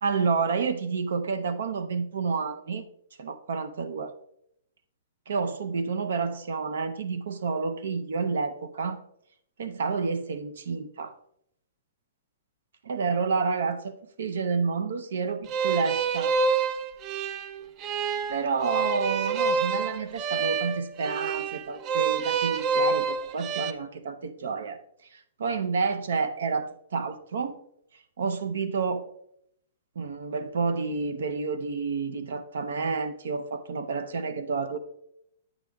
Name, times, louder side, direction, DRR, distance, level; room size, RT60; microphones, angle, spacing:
voice 1, 0.0-2.8 3.2-4.1 5.3-9.0 9.6-11.1 12.9-16.3 18.3-24.8 25.1-27.5 28.2-29.1 30.0-34.8, right 4 dB, 80° right, 10 dB, 0.5 m, -29 dB
sound 1, 15.5-23.7, right 5 dB, 30° right, 0.4 m, -27 dB
8.6 x 7.7 x 2.3 m, 0.74 s
hypercardioid pair, 145°, 0 cm